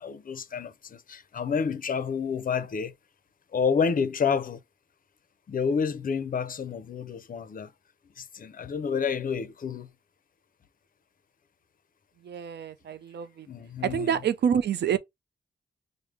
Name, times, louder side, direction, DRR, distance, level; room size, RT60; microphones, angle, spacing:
voice 1, 0.0-2.9 3.5-4.6 5.5-7.7 8.2-9.9 13.5-14.3, left 6 dB, 55° left, 0.5 m, -29 dB
voice 2, 12.3-13.5 13.9-15.0, right 8 dB, 80° right, 0.5 m, -27 dB
4.8 x 2.0 x 3.2 m
cardioid pair, 70°, 17 cm